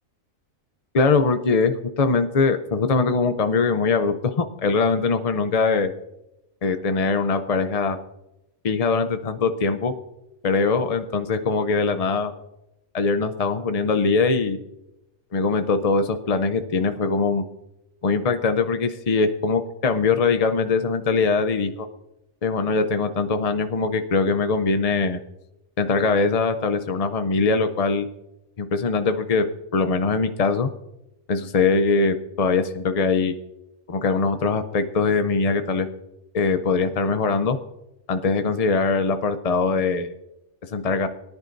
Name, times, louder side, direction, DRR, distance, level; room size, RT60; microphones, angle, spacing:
voice 1, 0.9-5.9 6.6-8.0 8.6-9.9 10.4-12.3 12.9-14.6 15.3-17.4 18.0-21.9 22.4-25.2 25.8-28.1 28.6-29.4 29.7-30.7 31.3-33.3 33.9-35.9 36.3-37.6 38.1-40.1 40.7-41.1, left 4 dB, 45° left, 8 dB, 0.5 m, -22 dB
22.0 x 11.0 x 2.6 m, 0.89 s
omnidirectional pair, 1.4 m